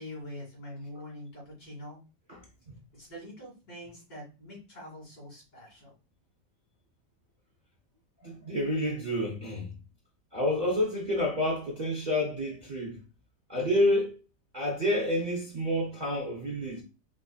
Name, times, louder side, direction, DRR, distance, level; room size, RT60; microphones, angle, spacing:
voice 1, 0.0-2.0 2.9-5.9, left 1 dB, 80° left, 2.7 m, -44 dB
voice 2, 8.2-9.7 10.3-13.0 13.5-14.2 14.5-16.8, left 1 dB, 50° right, 0.5 m, -29 dB
4.6 x 2.5 x 2.3 m
omnidirectional pair, 1.8 m